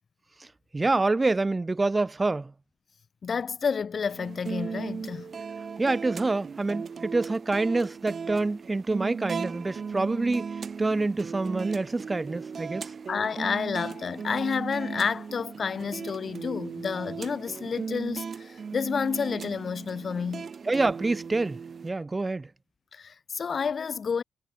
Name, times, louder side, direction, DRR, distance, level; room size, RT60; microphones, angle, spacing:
voice 1, 0.7-2.5 5.8-12.9 20.6-22.5, right 3 dB, 30° right, 2.9 m, -27 dB
voice 2, 3.2-5.3 13.1-20.5 22.9-24.2, left 6 dB, 55° left, 2.1 m, -30 dB
sound 1, 4.1-21.9, right 6 dB, 55° right, 6.8 m, -37 dB
supercardioid pair, 45°, 0 cm